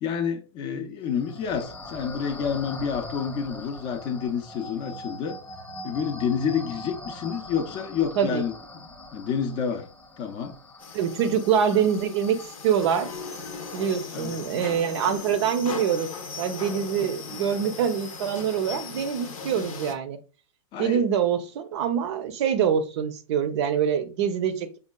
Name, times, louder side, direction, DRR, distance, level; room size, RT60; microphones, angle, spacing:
voice 1, 0.0-5.4 5.8-9.9 10.2-10.6 14.1-14.3 20.7-21.0, left 7 dB, 30° left, 0.5 m, -29 dB
sound 1, 1.0-14.4, left 1 dB, 15° left, 0.9 m, -42 dB
sound 2, 10.8-19.9, left 5 dB, 80° left, 0.7 m, -38 dB
voice 2, 10.9-12.4 12.6-13.1 13.7-16.1 16.4-20.2 20.8-24.8, right 8 dB, 50° right, 0.5 m, -25 dB
5.2 x 2.3 x 2.2 m
hypercardioid pair, 130°, 18 cm